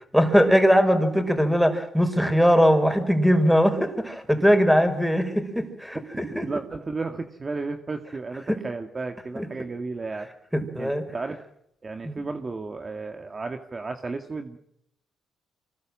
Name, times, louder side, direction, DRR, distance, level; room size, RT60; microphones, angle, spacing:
voice 1, 0.1-6.5 8.5-8.6 9.3-9.4 10.5-11.0 12.0-12.2, equal, ahead, 8 dB, 5.3 m, -20 dB
voice 2, 6.1-10.3 10.8-11.4 11.8-14.6, right 3 dB, 30° right, 5 dB, 2.0 m, -33 dB
25.5 x 20.5 x 7.6 m, 0.76 s
cardioid pair, 90°, 0 cm